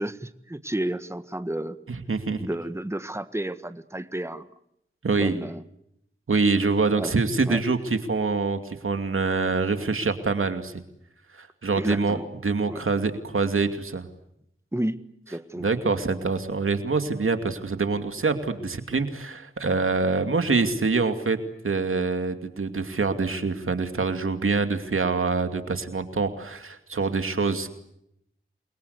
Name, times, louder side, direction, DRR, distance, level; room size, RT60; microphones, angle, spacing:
voice 1, 0.0-1.8 2.4-4.5 5.2-5.6 6.9-7.2 7.5-7.6 11.7-12.3 12.7-12.8 14.7-15.0 15.3-15.7, right 1 dB, 15° right, 11 dB, 1.6 m, -31 dB
voice 2, 2.1-2.5 5.0-5.3 6.3-10.7 11.4-14.1 15.6-21.4 21.6-27.7, right 4 dB, 85° right, 7 dB, 2.6 m, -25 dB
29.5 x 23.0 x 8.2 m, 0.77 s
cardioid pair, 40°, 21 cm